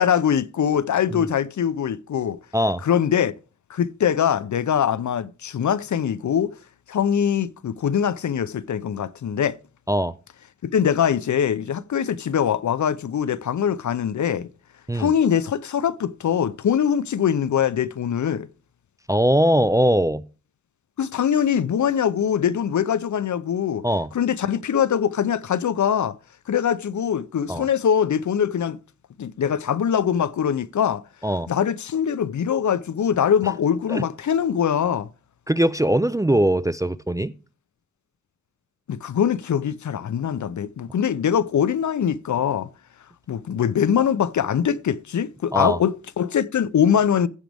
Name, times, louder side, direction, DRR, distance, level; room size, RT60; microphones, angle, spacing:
voice 1, 0.0-2.4 2.8-3.3 3.7-6.5 6.9-9.6 10.6-14.5 14.9-18.5 21.0-23.9 24.1-26.2 26.5-28.8 29.2-31.0 31.5-35.1 38.9-42.7 43.3-47.3, left 8 dB, 70° left, 0.6 m, -22 dB
voice 2, 19.1-20.2 23.8-24.1 27.5-27.7 31.2-31.5 33.9-34.0 35.5-37.3 45.5-45.8, equal, 10° right, 0.3 m, -21 dB
15.0 x 5.2 x 3.4 m
wide cardioid pair, 95°, 30 cm